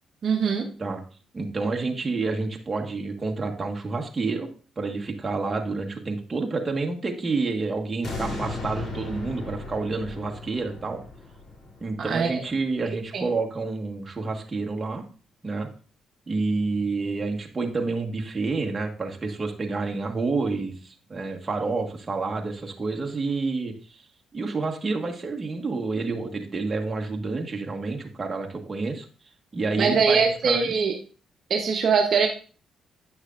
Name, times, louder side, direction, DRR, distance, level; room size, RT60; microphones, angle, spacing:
voice 1, 0.2-0.7 12.0-12.4 13.1-13.2 29.8-30.9 31.5-32.3, right 5 dB, 55° right, 3 dB, 0.9 m, -22 dB
voice 2, 1.3-4.5 4.8-11.0 11.8-15.0 15.4-15.7 16.3-23.7 24.3-29.1 29.5-30.8, right 3 dB, 25° right, 1 dB, 1.4 m, -29 dB
sound 1, 8.0-13.1 13.6-13.7, left 2 dB, 50° left, 3.2 m, -36 dB
8.8 x 6.3 x 2.4 m, 0.38 s
cardioid pair, 90°, 0 cm